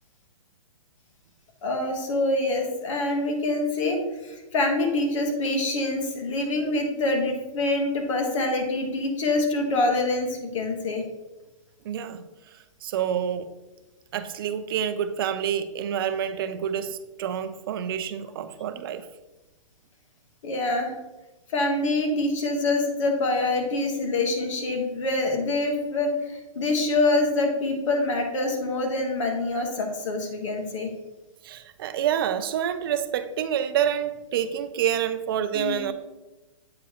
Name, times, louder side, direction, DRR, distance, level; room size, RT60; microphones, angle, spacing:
voice 1, 1.6-11.1 20.4-20.9 21.5-30.9 35.5-35.9, left 2 dB, 60° left, 1.5 m, -25 dB
voice 2, 11.8-12.2 12.8-13.5 14.1-19.1 31.4-35.9, right 9 dB, 40° right, 0.5 m, -28 dB
8.3 x 4.6 x 3.0 m
hypercardioid pair, 160°, 18 cm